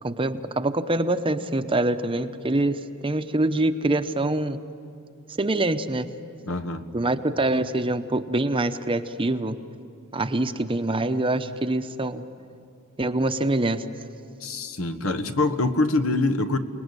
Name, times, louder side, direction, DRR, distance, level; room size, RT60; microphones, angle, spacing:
voice 1, 0.0-4.6 5.4-6.1 6.9-9.6 10.1-12.2 13.0-13.8, right 2 dB, 25° right, 10 dB, 0.9 m, -25 dB
voice 2, 6.5-6.8 14.4-16.6, left 2 dB, 75° left, 10 dB, 1.4 m, -24 dB
29.0 x 19.5 x 9.8 m, 2.4 s
head